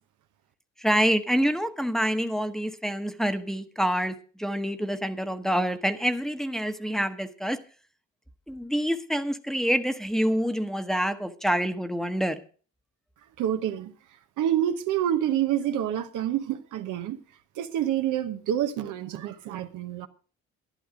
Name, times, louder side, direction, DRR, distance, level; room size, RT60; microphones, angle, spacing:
voice 1, 0.8-7.6 8.5-12.4, equal, ahead, 1.0 m, -27 dB
voice 2, 13.4-13.9 14.4-17.2 17.6-20.1, right 11 dB, 90° right, 1.1 m, -27 dB
11.5 x 11.0 x 5.1 m
cardioid pair, 90°, 30 cm